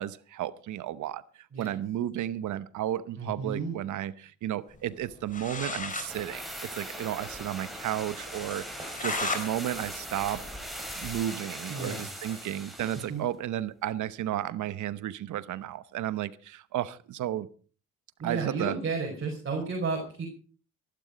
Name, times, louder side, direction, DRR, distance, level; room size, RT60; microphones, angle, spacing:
voice 1, 0.0-6.4 6.7-10.4 10.9-17.5 18.2-18.8, right 12 dB, 75° right, 1.0 m, -33 dB
voice 2, 3.2-3.7 11.7-12.3 13.1-13.2 18.2-20.3, right 4 dB, 45° right, 4.9 m, -32 dB
sound 1, 5.0-5.1 5.3-6.1 6.4-6.5 6.8-6.9 7.3-7.4 7.8-7.9 8.5-9.5 9.8-11.2, left 3 dB, 25° left, 4.2 m, -34 dB
sound 2, 5.9-13.2 13.4-13.5, equal, ahead, 6.0 m, -40 dB
sound 3, 8.3-12.5 12.8-13.2, right 2 dB, 20° right, 4.7 m, -49 dB
15.5 x 12.0 x 5.1 m
cardioid pair, 90°, 30 cm